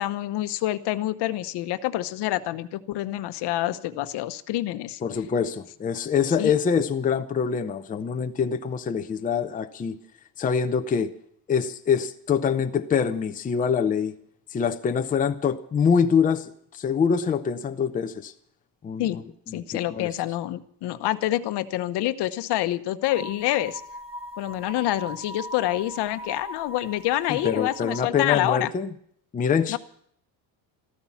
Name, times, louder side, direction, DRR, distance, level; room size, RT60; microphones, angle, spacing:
voice 1, 0.0-5.0 6.4-6.5 19.0-19.2 19.5-23.8 24.4-28.7 29.7-29.8, left 14 dB, 65° left, 1.0 m, -27 dB
voice 2, 5.0-10.0 10.4-11.1 11.5-14.1 14.5-18.3 18.8-20.1 27.3-28.9 29.3-29.8, left 6 dB, 20° left, 0.6 m, -25 dB
sound 1, 23.0-28.0, equal, 15° right, 1.5 m, -40 dB
14.0 x 13.5 x 7.2 m
cardioid pair, 160°, 44 cm